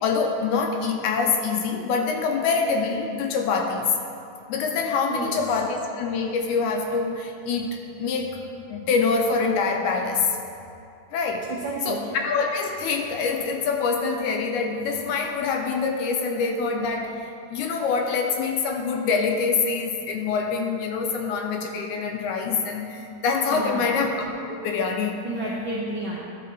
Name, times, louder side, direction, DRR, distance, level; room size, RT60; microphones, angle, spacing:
voice 1, 0.0-4.0 4.5-8.4 8.7-10.4 11.1-11.5 11.9-25.3, left 5 dB, 80° left, 3 dB, 2.0 m, -25 dB
voice 2, 11.5-12.0 23.5-23.9 25.2-26.2, right 2 dB, 85° right, -5 dB, 1.0 m, -30 dB
13.0 x 4.6 x 4.1 m, 2.5 s
omnidirectional pair, 3.6 m